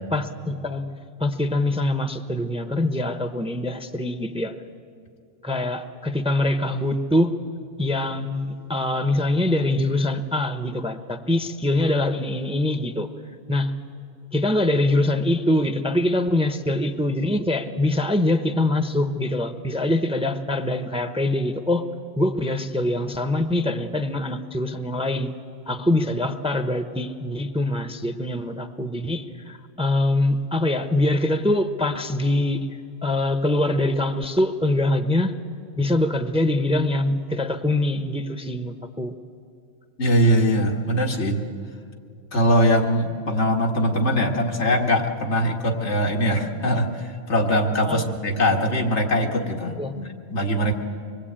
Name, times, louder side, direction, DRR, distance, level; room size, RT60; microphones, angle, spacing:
voice 1, 0.1-0.9 1.2-4.6 5.4-7.3 7.8-13.1 13.5-13.7 14.3-21.8 22.2-25.3 25.7-35.3 35.8-39.1 47.8-48.0 49.8-50.0, left 1 dB, 5° right, 9 dB, 0.7 m, -24 dB
voice 2, 40.0-41.4 42.3-50.7, equal, 90° left, 2 dB, 2.0 m, -22 dB
24.5 x 21.0 x 8.8 m, 2.4 s
omnidirectional pair, 1.1 m